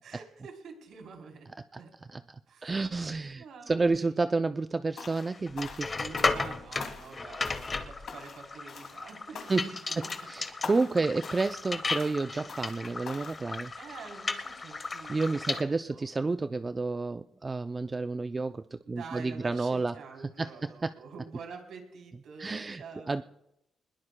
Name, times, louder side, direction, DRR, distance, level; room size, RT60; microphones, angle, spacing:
voice 1, 0.0-1.9 2.5-2.7 3.4-4.3 6.0-10.2 11.3-11.4 12.3-12.5 13.8-16.1 17.7-17.8 18.9-23.2, right 5 dB, 75° right, 2 dB, 3.4 m, -47 dB
voice 2, 2.6-5.9 9.5-9.7 10.0-13.7 15.1-20.0 20.4-20.9 22.4-22.8 23.1-23.2, right 3 dB, 25° right, 10 dB, 0.4 m, -30 dB
sound 1, 5.0-5.3 5.6-6.5 6.8-7.2 7.4-7.8 8.1-8.4 8.7-9.0 9.3-9.7 10.0-10.3 10.6-11.0 11.2-11.6 11.9-12.2 12.5-12.8 13.1-13.4, left 6 dB, 65° left, 2.4 m, -43 dB
sound 2, 5.2-15.6, left 3 dB, 35° left, 1.2 m, -35 dB
22.5 x 20.5 x 2.2 m, 0.85 s
cardioid pair, 90°, 0 cm